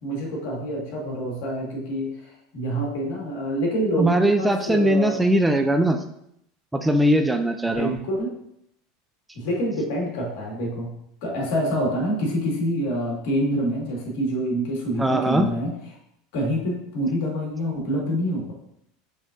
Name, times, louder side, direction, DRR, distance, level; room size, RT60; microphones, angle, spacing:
voice 1, 0.0-5.2 7.7-8.3 9.3-10.9 11.2-15.7 16.3-18.5, equal, 65° left, -1 dB, 1.8 m, -26 dB
voice 2, 4.0-6.0 6.7-7.9 15.0-15.5, right 1 dB, 10° right, 6 dB, 0.4 m, -20 dB
5.3 x 3.6 x 2.6 m, 0.74 s
supercardioid pair, 105°, 0 cm